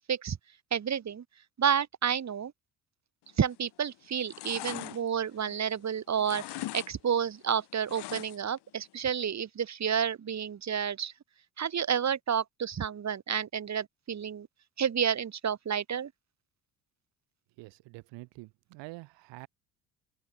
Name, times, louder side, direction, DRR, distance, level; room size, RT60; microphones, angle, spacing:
voice 1, 0.7-1.2 1.6-2.5 3.4-11.1 11.6-14.5 14.8-16.1, right 8 dB, 35° right, 2.5 m, -30 dB
sound 1, 3.4-3.8 4.1-5.9 6.2-6.9 7.2-8.6 8.9-9.0, left 16 dB, 60° left, 3.5 m, -41 dB
voice 2, 17.6-19.5, right 23 dB, 65° right, 7.8 m, -46 dB
open air
hypercardioid pair, 55°, 46 cm